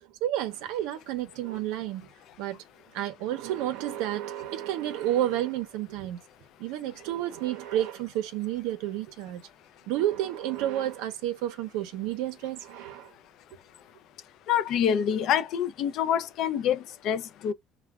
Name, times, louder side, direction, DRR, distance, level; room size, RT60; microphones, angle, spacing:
voice 1, 0.2-2.1 2.4-2.6 2.9-6.2 6.6-9.4 9.9-13.1, right 13 dB, 85° right, 0.5 m, -30 dB
voice 2, 14.5-17.5, left 9 dB, 60° left, 0.3 m, -26 dB
2.3 x 2.1 x 3.3 m
cardioid pair, 140°, 0 cm